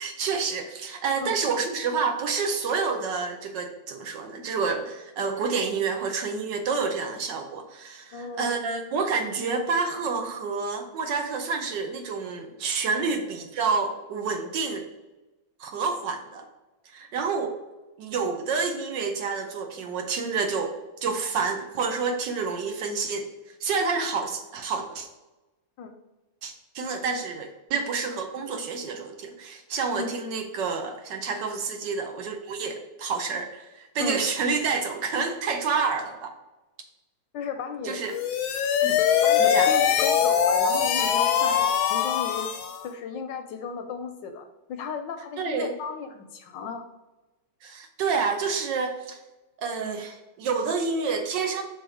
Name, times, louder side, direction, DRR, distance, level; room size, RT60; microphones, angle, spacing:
voice 1, 0.0-14.9 15.6-16.5 16.9-17.6 18.0-20.7 21.0-23.3 23.6-25.1 26.4-36.3 37.8-38.2 38.8-39.0 39.4-39.7 45.4-45.7 47.6-49.2 49.6-51.6, right 5 dB, 70° right, 5 dB, 1.3 m, -28 dB
voice 2, 8.1-8.5 13.0-13.1 25.8-25.9 30.0-30.1 34.0-34.3 37.3-38.0 39.2-42.5 42.8-46.9, left 5 dB, 75° left, 6 dB, 1.2 m, -34 dB
sound 1, 38.0-42.9, left 8 dB, 90° left, 1.5 m, -22 dB
5.3 x 3.7 x 4.8 m, 1.1 s
omnidirectional pair, 2.2 m